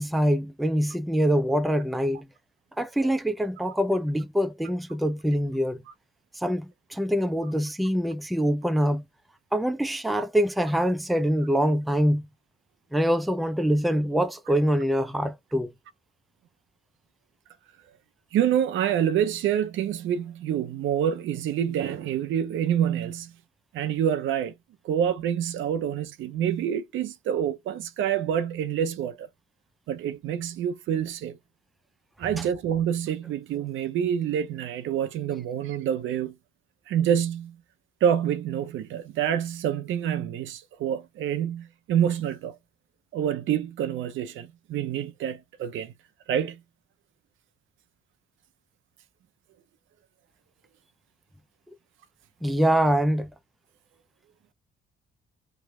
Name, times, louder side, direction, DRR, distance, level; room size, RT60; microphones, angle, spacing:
voice 1, 0.0-2.3 2.8-5.8 6.4-9.0 9.5-12.2 12.9-15.7 52.4-53.3, equal, ahead, 0.4 m, -24 dB
voice 2, 18.3-23.3 23.7-24.5 24.8-29.3 29.9-31.4 32.2-36.3 36.9-37.6 38.0-42.6 43.1-45.9 46.3-46.6, right 9 dB, 75° right, 0.6 m, -27 dB
3.2 x 2.1 x 3.1 m
cardioid pair, 90°, 20 cm